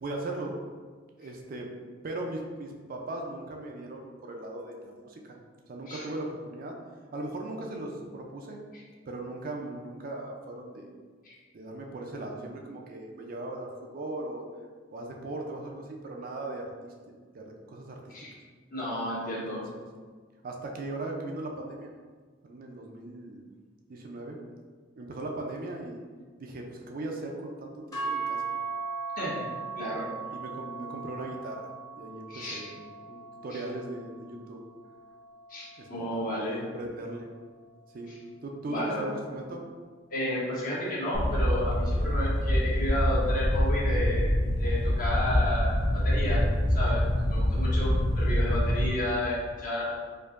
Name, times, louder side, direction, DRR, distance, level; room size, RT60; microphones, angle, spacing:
voice 1, 0.0-0.5 1.2-1.7 2.0-5.4 5.7-6.8 7.1-8.6 9.1-10.9 11.5-14.4 14.9-16.9 17.3-18.1 19.3-19.8 20.4-21.9 22.4-23.4 23.9-24.4 25.0-26.0 26.4-28.4 30.3-31.7 32.0-34.6 35.8-37.3 37.9-38.1 38.4-39.6, right 2 dB, 50° right, 1 dB, 0.4 m, -38 dB
voice 2, 18.7-19.6 29.2-29.5 29.8-30.0 32.3-32.6 33.5-33.6 35.5-36.6 38.1-38.2 38.7-39.1 40.1-44.3 44.6-46.4 46.7-49.9, left 1 dB, 45° left, -6 dB, 1.1 m, -32 dB
sound 1, 27.9-36.2, right 4 dB, 20° left, 1.0 m, -38 dB
sound 2, 41.1-48.9, equal, 80° left, 0.5 m, -25 dB
4.5 x 2.6 x 2.5 m, 1.5 s
head